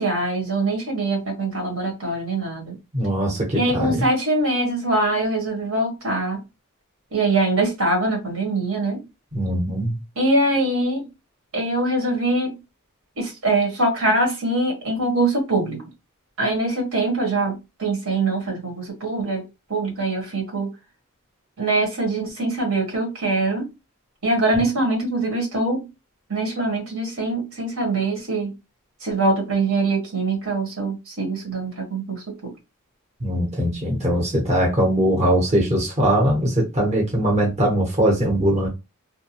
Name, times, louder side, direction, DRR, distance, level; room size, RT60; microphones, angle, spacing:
voice 1, 0.0-2.7 3.5-6.4 7.1-9.0 10.2-11.1 11.5-12.6 13.2-15.8 16.4-19.4 19.7-20.7 21.6-23.7 24.2-25.9 26.3-28.5 29.0-32.5, right 2 dB, 70° right, 1.2 m, -23 dB
voice 2, 2.9-4.0 9.3-10.0 33.2-38.7, right 1 dB, 30° right, 0.9 m, -21 dB
2.7 x 2.1 x 2.8 m
head